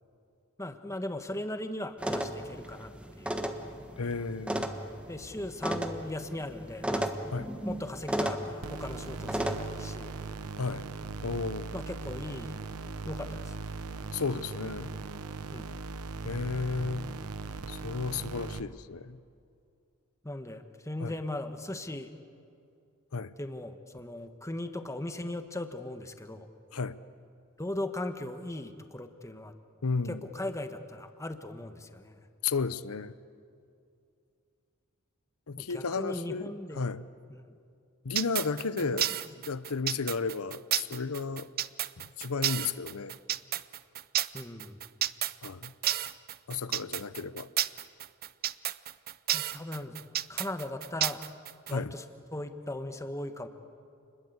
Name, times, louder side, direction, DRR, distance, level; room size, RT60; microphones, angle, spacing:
voice 1, 0.6-3.5 5.1-7.1 7.6-10.1 11.7-12.6 13.1-13.7 15.5-15.7 20.2-22.1 23.4-26.5 27.6-29.5 30.1-32.2 35.6-36.9 37.3-37.5 38.8-39.0 44.3-44.8 49.3-50.0 50.3-51.2 51.7-52.0 52.3-53.5, left 1 dB, 15° left, 8 dB, 1.3 m, -38 dB
sound 1, 2.0-9.6, right 1 dB, 5° right, 1.4 m, -35 dB
voice 2, 4.0-4.7 7.3-7.5 10.6-10.8 11.2-11.7 14.1-14.9 16.2-17.1 17.7-19.2 21.0-21.1 23.1-23.3 26.7-27.0 29.8-30.2 32.4-33.1 35.5-37.1 38.0-39.1 39.4-41.5 42.0-43.2 45.4-45.7 46.5-47.5 51.7-51.9, left 4 dB, 75° left, 15 dB, 0.8 m, -33 dB
sound 2, 8.6-18.6, right 3 dB, 85° right, 1.0 m, -39 dB
sound 3, 38.2-51.7, right 12 dB, 45° right, 0.5 m, -31 dB
29.0 x 21.5 x 8.1 m, 2.5 s
head